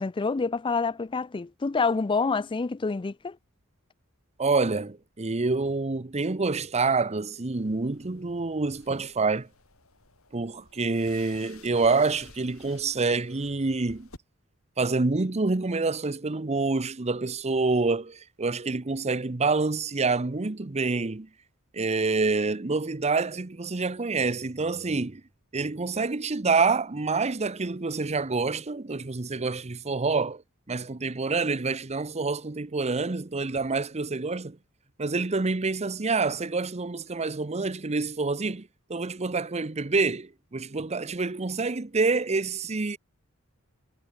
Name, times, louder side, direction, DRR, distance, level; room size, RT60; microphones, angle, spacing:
voice 1, 0.0-3.4, left 4 dB, 25° left, 0.4 m, -27 dB
voice 2, 4.4-9.5 10.3-14.1 14.8-21.3 21.7-25.2 25.5-30.4 30.7-34.6 35.0-43.0, right 3 dB, 30° right, 0.8 m, -27 dB
sound 1, 7.5-14.2, left 4 dB, 75° left, 5.7 m, -54 dB
head